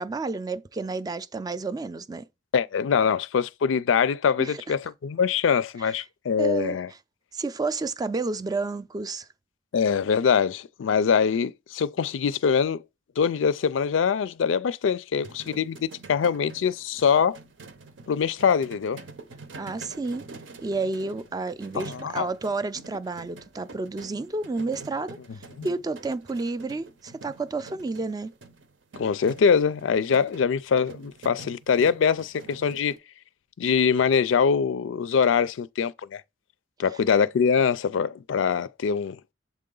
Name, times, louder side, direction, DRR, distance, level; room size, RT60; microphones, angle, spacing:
voice 1, 0.0-2.3 4.4-4.6 5.8-5.9 6.4-6.8 7.3-9.3 19.6-20.2 20.6-25.2 25.6-28.3, right 3 dB, 20° right, 0.3 m, -30 dB
voice 2, 2.5-6.9 9.7-12.8 13.2-17.4 18.1-19.0 21.7-22.3 25.6-25.7 29.0-32.9 33.6-36.2 36.8-39.2, left 6 dB, 85° left, 0.4 m, -23 dB
sound 1, 15.2-33.0, right 3 dB, 80° right, 0.8 m, -46 dB
7.2 x 3.7 x 3.8 m
head